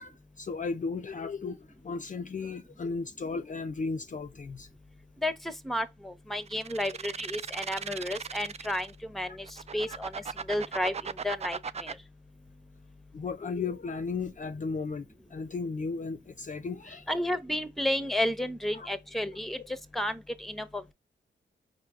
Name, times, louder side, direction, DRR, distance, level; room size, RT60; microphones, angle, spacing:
voice 1, 0.0-4.7 9.3-9.4 9.7-10.0 13.1-17.1 18.7-18.9 19.6-19.7, left 4 dB, 40° left, 0.5 m, -35 dB
voice 2, 5.6-8.9 9.1-9.5 9.7-10.1 10.5-11.9 17.1-19.6 19.9-20.8, left 1 dB, ahead, 0.8 m, -31 dB
sound 1, 6.5-9.0 9.5-11.9, right 6 dB, 30° right, 0.4 m, -37 dB
4.6 x 2.6 x 3.6 m
supercardioid pair, 45°, 21 cm